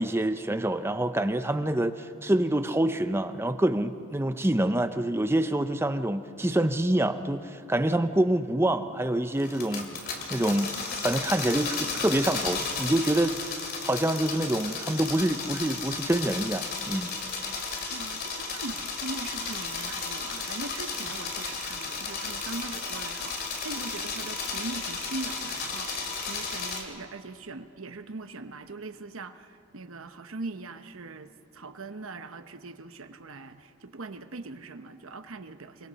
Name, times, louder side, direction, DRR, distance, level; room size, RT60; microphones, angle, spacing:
voice 1, 0.0-9.9 10.3-10.7 11.0-17.1, right 1 dB, 10° right, 10 dB, 0.5 m, -26 dB
sound 1, 9.4-26.8, left 4 dB, 45° left, 2.5 m, -34 dB
voice 2, 17.9-35.9, right 3 dB, 65° right, 9 dB, 0.9 m, -41 dB
27.5 x 23.5 x 4.2 m, 2.8 s
head